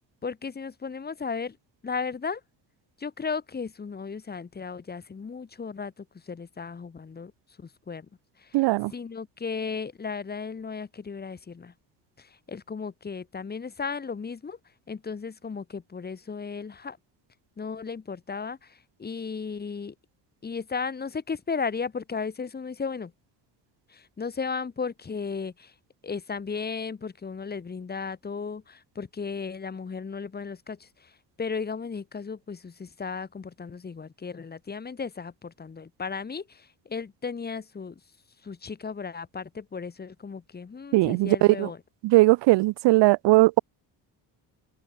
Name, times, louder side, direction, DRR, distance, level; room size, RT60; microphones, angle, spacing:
voice 1, 0.2-1.6 1.8-2.4 3.0-7.3 7.6-8.1 8.4-8.6 8.9-11.7 12.2-14.6 14.9-17.0 17.6-19.9 20.4-23.1 23.9-25.7 26.0-31.1 31.4-38.0 38.4-41.8, left 5 dB, 20° left, 3.2 m, -35 dB
voice 2, 8.5-8.9 40.9-41.7 42.0-43.6, right 20 dB, 80° right, 0.8 m, -19 dB
open air
cardioid pair, 160°, 42 cm